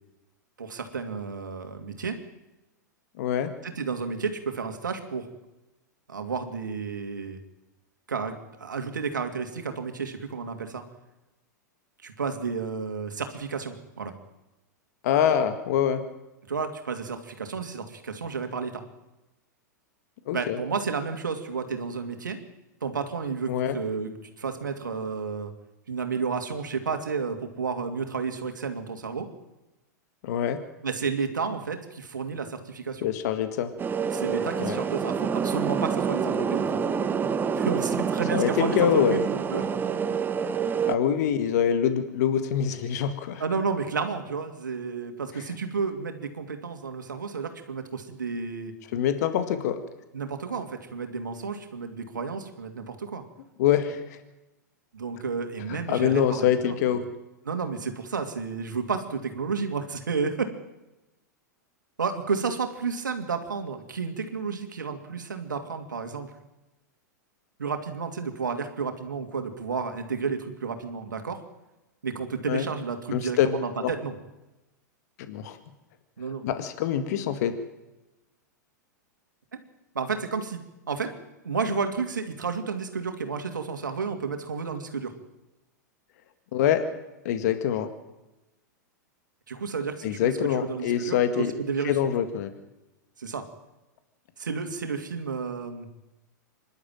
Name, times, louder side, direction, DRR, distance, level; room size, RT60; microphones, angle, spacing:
voice 1, 0.6-2.2 3.6-5.3 6.1-7.4 8.1-8.3 8.6-10.8 12.0-14.1 16.5-18.8 20.3-22.4 22.8-25.5 25.9-29.3 30.8-33.1 34.1-36.7 37.6-39.6 43.4-48.7 50.1-53.2 54.9-56.8 57.5-60.5 62.0-66.3 67.6-71.4 72.0-74.2 76.2-76.5 79.5-79.6 79.9-81.1 81.4-85.1 89.5-90.3 90.6-92.0 93.2-93.4 94.4-95.9, right 5 dB, 85° right, 6 dB, 2.6 m, -31 dB
voice 2, 3.2-3.5 15.0-16.0 20.3-20.6 23.5-23.8 30.2-30.6 33.0-33.7 34.6-34.8 38.3-39.2 40.9-43.4 48.9-49.8 53.6-54.2 55.7-57.1 72.5-72.7 73.1-73.5 73.8-73.9 75.3-75.6 76.4-77.5 86.5-86.9 87.2-87.9 90.0-91.5 91.8-92.5, left 9 dB, 60° left, 9 dB, 2.0 m, -25 dB
sound 1, 33.8-41.0, right 6 dB, 20° right, 1.0 m, -27 dB
25.5 x 12.0 x 9.2 m, 0.99 s
hypercardioid pair, 105°, 10 cm